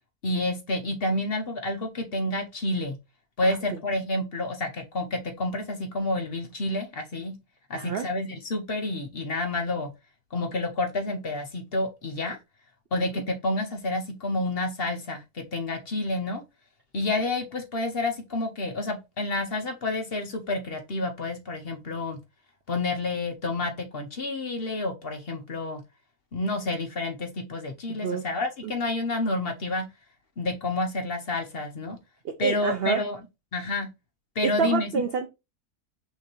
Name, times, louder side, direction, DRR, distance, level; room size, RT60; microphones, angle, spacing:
voice 1, 0.2-3.0 3.4-7.3 7.7-9.9 10.3-12.4 12.9-16.4 16.9-22.2 22.7-25.8 26.3-29.9 30.4-32.0 32.4-33.2 33.5-33.9 34.3-34.9, left 2 dB, 50° left, 0.8 m, -29 dB
voice 2, 7.7-8.1 13.0-13.2 27.9-28.3 28.6-28.7 32.2-33.0 34.4-35.3, right 6 dB, 80° right, 0.5 m, -28 dB
5.9 x 2.8 x 2.9 m
omnidirectional pair, 1.7 m